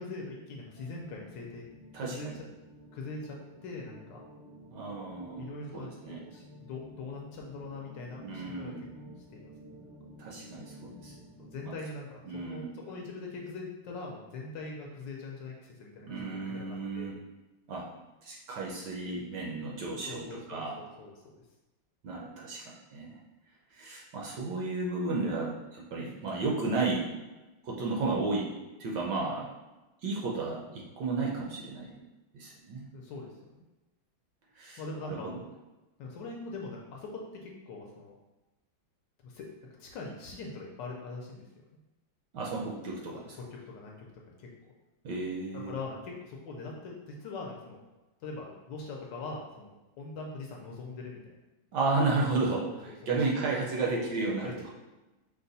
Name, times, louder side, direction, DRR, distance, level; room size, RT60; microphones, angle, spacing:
voice 1, 0.0-1.6 1.9-2.3 2.9-3.4 3.6-4.2 5.4-8.7 9.3-9.8 11.4-17.2 20.0-21.4 32.9-33.7 34.8-35.4 36.0-38.1 39.2-39.5 39.8-41.4 43.7-44.0 44.3-44.5 45.5-47.8 48.2-51.4 53.0-53.4 53.9-54.0 54.4-54.5, left 3 dB, 70° left, -1 dB, 1.2 m, -42 dB
sound 1, 0.7-11.6, equal, 85° right, 2.5 m, -51 dB
voice 2, 1.9-2.4 4.7-6.2 8.2-8.9 10.2-11.1 11.6-11.7 12.2-12.8 16.1-17.1 17.7-17.9 18.2-20.9 22.0-23.2 23.7-27.1 27.6-28.5 28.8-29.5 30.0-32.0 32.3-32.9 34.6-35.4 42.3-43.4 45.0-45.7 51.7-54.7, right 3 dB, 70° right, -2 dB, 1.1 m, -33 dB
5.4 x 2.2 x 4.0 m, 1.1 s
omnidirectional pair, 2.2 m